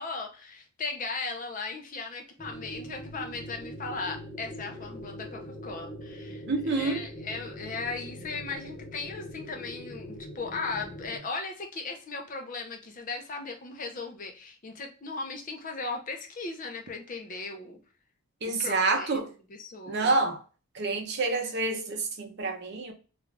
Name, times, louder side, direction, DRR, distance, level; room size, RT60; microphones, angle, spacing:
voice 1, 0.0-17.8 18.4-20.2, left 4 dB, 35° left, 0.5 m, -37 dB
sound 1, 2.4-11.2, equal, ahead, 0.8 m, -42 dB
voice 2, 6.5-7.0 18.4-19.3 19.9-20.4 20.7-22.9, right 3 dB, 50° right, 0.6 m, -28 dB
2.4 x 2.3 x 3.1 m
head